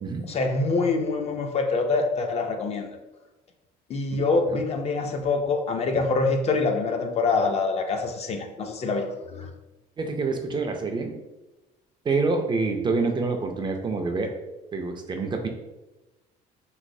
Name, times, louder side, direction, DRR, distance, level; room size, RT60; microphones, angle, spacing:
voice 1, 0.2-2.9 3.9-9.5, left 3 dB, 40° left, 5 dB, 0.4 m, -25 dB
voice 2, 10.0-11.2 12.1-14.3 14.7-15.5, right 3 dB, 25° right, 4 dB, 0.4 m, -26 dB
3.1 x 3.0 x 2.6 m, 1.1 s
cardioid pair, 110°, 17 cm